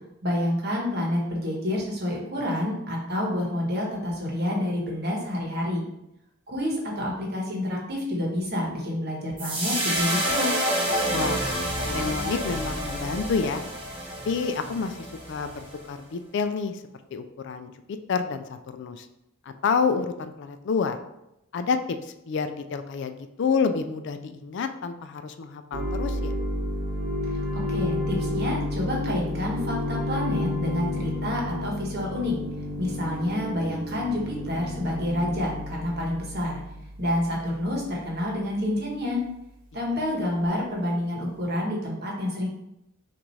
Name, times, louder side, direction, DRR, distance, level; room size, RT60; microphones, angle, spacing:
voice 1, 0.2-5.8 6.5-10.5 27.5-32.4 32.8-36.6 37.0-39.2 39.7-42.5, left 1 dB, 55° right, -2 dB, 1.3 m, -28 dB
sound 1, 9.4-15.8, right 1 dB, 25° right, 1.0 m, -28 dB
voice 2, 11.1-11.5 11.9-13.6 14.3-15.0 15.3-16.8 17.1-19.1 19.5-21.0 21.5-26.3, left 5 dB, 60° left, 9 dB, 0.4 m, -28 dB
sound 2, 25.7-37.2, left 1 dB, 75° right, 0.7 m, -31 dB
6.0 x 2.6 x 3.1 m, 0.86 s
head